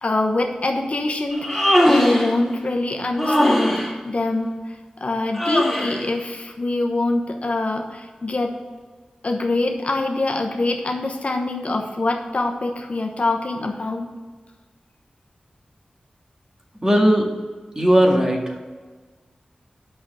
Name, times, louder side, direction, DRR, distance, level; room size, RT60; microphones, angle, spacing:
voice 1, 0.0-8.5 9.2-14.1, left 2 dB, 60° left, 3 dB, 1.0 m, -24 dB
Human voice, 1.3-2.4 3.2-3.9 5.3-6.0, equal, ahead, 2.0 m, -19 dB
voice 2, 16.7-17.3 17.8-18.6, equal, 25° right, 1 dB, 1.9 m, -17 dB
6.3 x 6.3 x 7.3 m, 1.4 s
cardioid pair, 45°, 3 cm